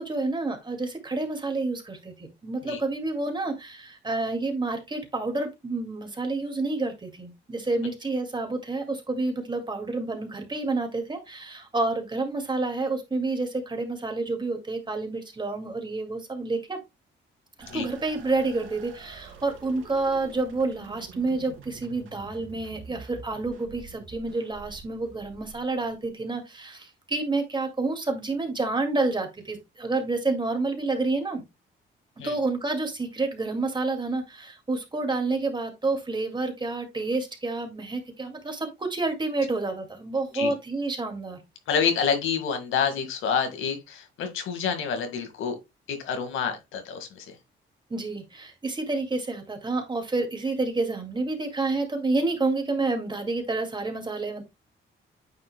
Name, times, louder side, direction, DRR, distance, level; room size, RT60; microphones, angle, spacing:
voice 1, 0.0-16.8 17.7-31.4 32.2-41.4 47.9-54.4, right 3 dB, 25° right, 2.1 m, -29 dB
sound 1, 17.6-26.1, right 5 dB, 80° right, 2.6 m, -47 dB
voice 2, 41.7-45.6 45.9-47.4, left 6 dB, 80° left, 1.9 m, -28 dB
9.0 x 5.6 x 2.2 m
cardioid pair, 90°, 20 cm